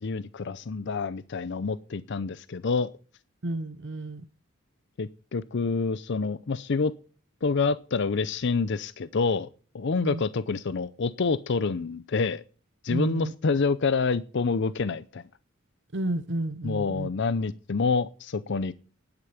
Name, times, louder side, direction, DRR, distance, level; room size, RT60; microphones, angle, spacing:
voice 1, 0.0-2.9 5.0-6.9 7.4-9.5 9.7-12.4 12.8-15.2 16.6-18.7, left 4 dB, 55° left, 0.5 m, -27 dB
voice 2, 3.4-4.3 10.0-10.2 12.9-13.3 15.9-17.1, right 1 dB, 60° right, 0.9 m, -31 dB
11.0 x 9.8 x 5.9 m
head